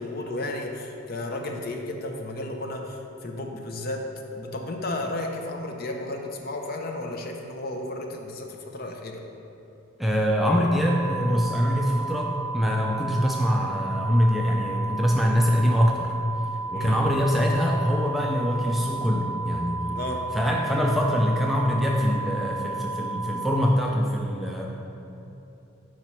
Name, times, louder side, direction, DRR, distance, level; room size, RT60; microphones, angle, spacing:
voice 1, 0.0-9.3 16.7-17.0 19.9-20.3, left 2 dB, 45° left, 2 dB, 0.6 m, -33 dB
voice 2, 10.0-16.2 16.7-20.0 20.3-24.7, equal, ahead, -1 dB, 0.3 m, -24 dB
sound 1, 10.9-23.7, right 3 dB, 85° right, 0.3 m, -33 dB
5.5 x 4.9 x 4.4 m, 2.9 s
head